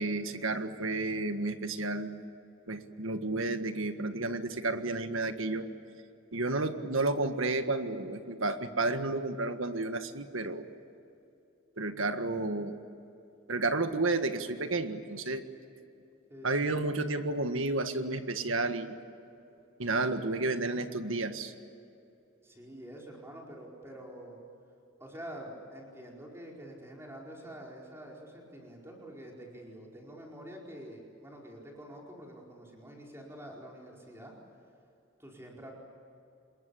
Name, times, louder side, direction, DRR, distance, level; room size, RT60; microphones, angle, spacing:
voice 1, 0.0-2.1 2.7-5.7 6.3-10.6 11.8-12.8 13.5-15.4 16.4-18.9 19.8-21.5, right 2 dB, 80° right, 8 dB, 1.7 m, -31 dB
voice 2, 16.3-16.8 22.4-24.4 25.0-34.3 35.2-35.7, right 1 dB, 10° right, -2 dB, 4.8 m, -47 dB
27.0 x 22.0 x 8.6 m, 2.8 s
head